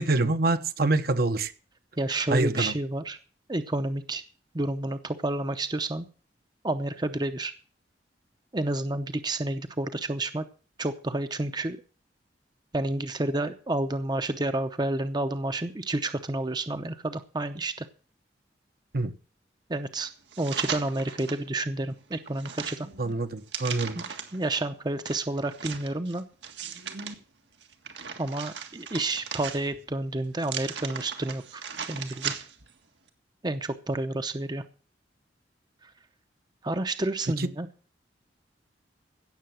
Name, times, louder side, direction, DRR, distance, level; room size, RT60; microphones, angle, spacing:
voice 1, 0.0-1.5 2.3-2.7 18.9-19.1 23.0-24.0 37.4-37.5, right 2 dB, 55° right, 9 dB, 1.0 m, -25 dB
voice 2, 2.0-3.2 3.5-4.2 4.5-6.1 6.6-7.5 8.5-10.5 10.8-11.8 12.7-17.9 19.7-20.1 20.4-22.9 24.0-24.1 24.3-26.2 28.2-31.6 31.9-32.3 33.4-34.6 35.8-35.9 36.6-37.7, right 2 dB, 25° right, 9 dB, 0.7 m, -30 dB
sound 1, 20.3-21.4 21.9-24.4 25.1-27.1 27.6-29.9 30.4-32.7 33.1-33.2, right 7 dB, 80° right, 1.8 m, -37 dB
16.5 x 6.9 x 7.7 m, 0.39 s
head